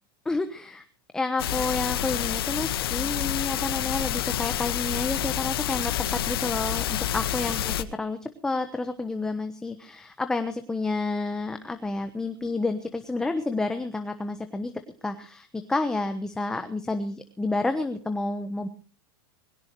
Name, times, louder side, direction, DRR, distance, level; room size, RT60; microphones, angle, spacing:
voice 1, 0.2-0.8 1.1-14.7 15.0-18.7, left 3 dB, 5° left, 8 dB, 1.1 m, -30 dB
sound 1, 1.4-7.8, left 11 dB, 85° left, 1.7 m, -28 dB
22.0 x 17.5 x 3.1 m, 0.38 s
supercardioid pair, 170°, 12 cm